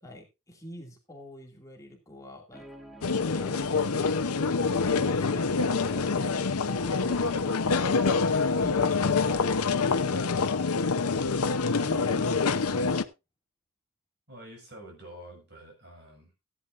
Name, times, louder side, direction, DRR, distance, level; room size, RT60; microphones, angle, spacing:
voice 1, 0.0-2.6 3.1-4.5 4.8-6.0 8.0-11.1 11.7-13.0, equal, 15° left, 2.4 m, -45 dB
Guitar, 2.5-9.1, equal, ahead, 1.1 m, -47 dB
sound 1, 3.0-13.0, left 4 dB, 90° left, 0.8 m, -26 dB
voice 2, 14.3-16.3, right 1 dB, 50° right, 5.9 m, -47 dB
15.5 x 11.0 x 2.6 m
head